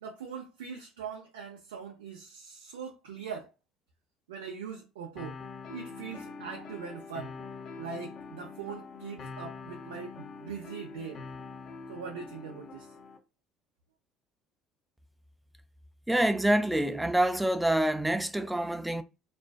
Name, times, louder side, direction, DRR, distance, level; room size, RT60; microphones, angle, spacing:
voice 1, 0.0-3.5 4.3-5.4 5.7-7.3 7.8-11.2 11.9-12.9, right 6 dB, 85° right, 0.4 m, -41 dB
sound 1, 5.2-13.2, left 4 dB, 55° left, 0.6 m, -44 dB
voice 2, 16.1-19.0, right 1 dB, 5° right, 0.3 m, -26 dB
2.4 x 2.2 x 2.2 m
hypercardioid pair, 70°, 0 cm